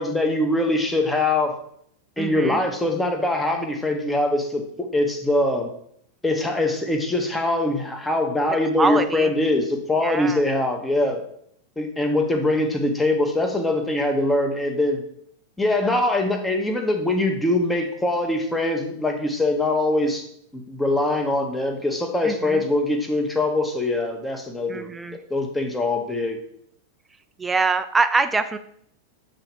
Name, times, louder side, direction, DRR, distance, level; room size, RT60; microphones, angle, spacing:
voice 1, 0.0-1.6 2.2-5.7 6.2-11.2 11.8-15.0 15.6-20.3 20.5-24.9 25.3-26.4, left 2 dB, 10° left, 4 dB, 0.9 m, -23 dB
voice 2, 2.2-2.6 8.5-9.3 10.0-10.4 22.2-22.6 24.7-25.2 27.4-28.6, right 4 dB, 15° right, 9 dB, 0.3 m, -24 dB
7.5 x 2.9 x 4.7 m, 0.68 s
figure-of-eight pair, 90°, 0 cm